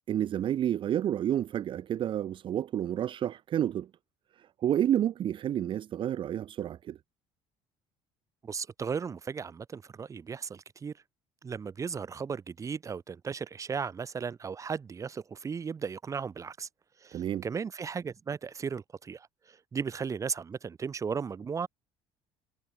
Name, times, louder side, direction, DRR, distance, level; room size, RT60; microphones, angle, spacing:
voice 1, 0.1-3.9 4.4-7.0 17.1-17.4, right 10 dB, 45° right, 0.8 m, -30 dB
voice 2, 8.4-10.9 11.4-16.7 17.0-19.3 19.7-21.7, right 6 dB, 25° right, 1.5 m, -36 dB
cardioid pair, 130°, 12 cm